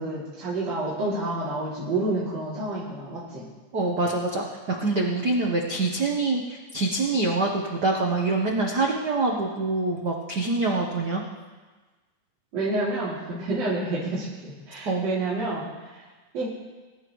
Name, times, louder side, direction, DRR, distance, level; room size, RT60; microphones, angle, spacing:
voice 1, 0.0-3.5 12.5-15.7 16.3-16.5, right 2 dB, 55° right, -9 dB, 3.7 m, -29 dB
voice 2, 3.7-11.2 14.8-15.0, right 3 dB, 90° right, -1 dB, 0.8 m, -25 dB
23.0 x 11.0 x 3.1 m, 1.3 s
omnidirectional pair, 3.6 m